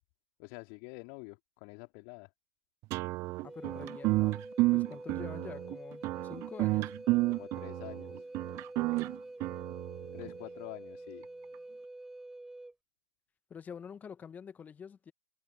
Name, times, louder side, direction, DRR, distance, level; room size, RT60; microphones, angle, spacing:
voice 1, 0.4-2.3 7.3-8.3 10.1-11.3, left 34 dB, 40° left, 2.5 m, -47 dB
sound 1, 2.9-10.3, right 21 dB, 30° right, 0.5 m, -31 dB
voice 2, 3.4-4.4 4.7-6.9 13.5-15.1, left 7 dB, 15° left, 1.4 m, -47 dB
Wind instrument woodwind instrument, 3.5-12.7, right 2 dB, 5° right, 5.7 m, -47 dB
figure-of-eight pair, 115°, 10 cm